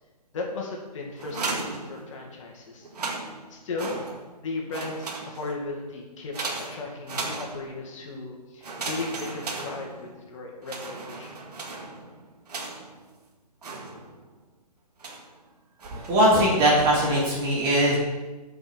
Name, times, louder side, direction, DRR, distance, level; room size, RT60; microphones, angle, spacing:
voice 1, 0.3-2.9 3.5-4.0 4.4-11.4, left 3 dB, 50° left, 0 dB, 2.2 m, -36 dB
sound 1, 1.2-2.4 2.8-4.4 4.7-5.7 6.3-7.9 8.6-10.3 10.6-13.0 13.6-14.3 15.0-15.4 15.8-16.3, right 3 dB, 70° right, 2.0 m, -36 dB
voice 2, 15.9-18.0, right 1 dB, 25° right, -5 dB, 3.1 m, -20 dB
8.6 x 5.5 x 6.3 m, 1.2 s
hypercardioid pair, 145°, 21 cm